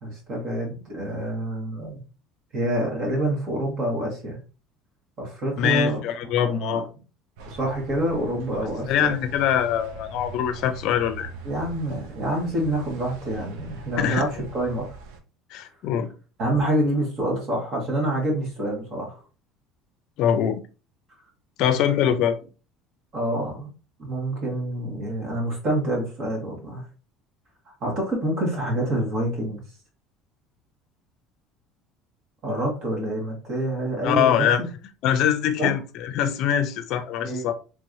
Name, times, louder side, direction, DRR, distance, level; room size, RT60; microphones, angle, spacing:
voice 1, 0.0-2.0 2.5-4.4 5.2-6.0 6.4-6.9 7.5-9.2 11.4-14.9 16.4-19.2 22.0-22.1 23.1-23.7 24.0-26.8 27.8-29.6 32.4-34.5 35.6-35.7 37.2-37.4, right 1 dB, 45° right, 1.7 m, -27 dB
voice 2, 5.6-6.9 8.9-11.3 14.0-14.2 15.5-16.1 20.2-20.6 21.6-22.4 34.0-34.6 35.0-37.5, left 9 dB, 60° left, 0.5 m, -23 dB
sound 1, 7.4-15.2, right 3 dB, 85° right, 0.6 m, -41 dB
3.3 x 3.1 x 2.6 m
cardioid pair, 140°, 0 cm